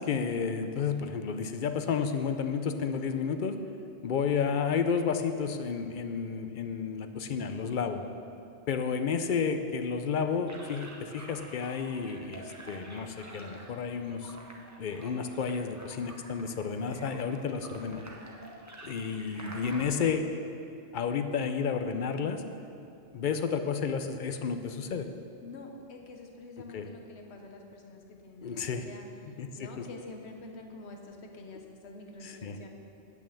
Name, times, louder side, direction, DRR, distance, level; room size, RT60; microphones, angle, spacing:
voice 1, 0.0-3.6 4.0-8.0 8.7-14.3 14.8-18.0 18.8-20.3 20.9-22.4 23.1-25.1 26.7-26.9 28.4-28.9 29.4-29.8 32.2-32.6, left 6 dB, 55° left, 8 dB, 0.7 m, -31 dB
sound 1, 10.5-19.9, right 2 dB, 15° right, 0.8 m, -48 dB
voice 2, 25.4-29.1 29.5-32.7, left 2 dB, 75° left, 3 dB, 1.2 m, -47 dB
8.9 x 6.0 x 7.1 m, 2.6 s
omnidirectional pair, 1.1 m